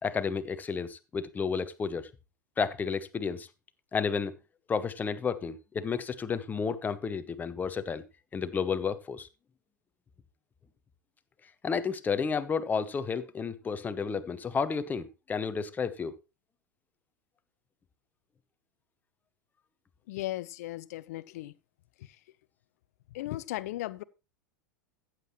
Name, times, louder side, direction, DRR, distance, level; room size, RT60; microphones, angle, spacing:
voice 1, 0.0-2.1 2.6-3.5 3.9-4.3 4.7-8.0 8.3-9.3 11.6-16.2, left 5 dB, 15° left, 0.9 m, -31 dB
voice 2, 20.1-21.5 23.1-24.0, left 16 dB, 55° left, 0.6 m, -36 dB
14.5 x 7.6 x 3.1 m
figure-of-eight pair, 90°, 10 cm